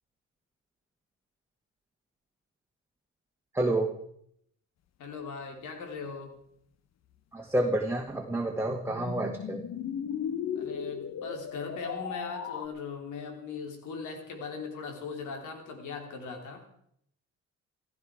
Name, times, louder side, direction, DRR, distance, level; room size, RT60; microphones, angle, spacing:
voice 1, 3.5-3.9 7.3-9.6, right 1 dB, 10° right, 2 dB, 1.8 m, -29 dB
voice 2, 5.0-6.4 10.5-16.7, left 4 dB, 80° left, 4 dB, 3.3 m, -39 dB
sound 1, 7.7-12.7, left 8 dB, 60° left, 1.0 m, -37 dB
15.5 x 14.5 x 4.9 m, 0.71 s
cardioid pair, 90°, 30 cm